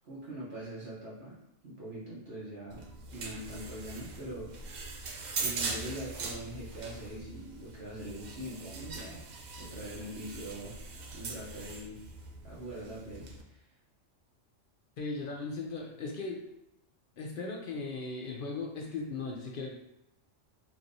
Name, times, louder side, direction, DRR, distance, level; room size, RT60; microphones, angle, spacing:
voice 1, 0.1-1.4 1.6-2.8 3.1-4.5 5.4-9.3 9.6-10.8 11.1-12.0 12.4-13.7, right 1 dB, 55° right, -8 dB, 1.1 m, -43 dB
sound 1, 2.7-13.4, right 3 dB, 85° right, 0.4 m, -41 dB
voice 2, 15.0-16.4 17.2-19.7, left 3 dB, 60° left, -1 dB, 0.6 m, -37 dB
3.4 x 3.0 x 2.6 m, 0.85 s
omnidirectional pair, 1.3 m